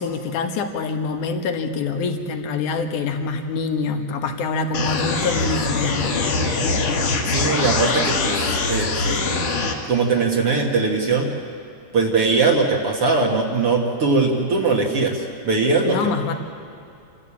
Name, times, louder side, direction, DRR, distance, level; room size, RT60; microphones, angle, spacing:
voice 1, 0.0-6.3 15.8-16.3, left 4 dB, 75° left, 6 dB, 2.8 m, -25 dB
sound 1, 4.7-9.7, left 3 dB, 55° left, 2.9 m, -22 dB
voice 2, 7.3-9.4 9.9-11.3 11.9-16.0, right 3 dB, 50° right, 0 dB, 2.4 m, -20 dB
28.0 x 14.0 x 8.6 m, 2.6 s
omnidirectional pair, 3.7 m